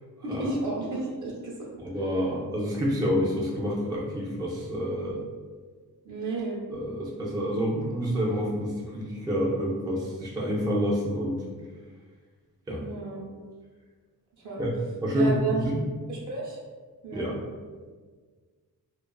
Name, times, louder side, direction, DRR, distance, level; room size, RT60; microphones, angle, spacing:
voice 1, 0.2-1.5 6.0-6.6 12.8-13.2 14.4-14.6 15.1-15.6 16.1-16.6 17.0-17.3, right 3 dB, 55° right, -4 dB, 0.8 m, -32 dB
voice 2, 1.8-5.2 6.7-11.4 12.7-12.8 14.6-14.7 15.0-15.8 17.1-17.4, equal, 10° right, -4 dB, 0.3 m, -28 dB
2.4 x 2.3 x 2.3 m, 1.5 s
wide cardioid pair, 110°, 36 cm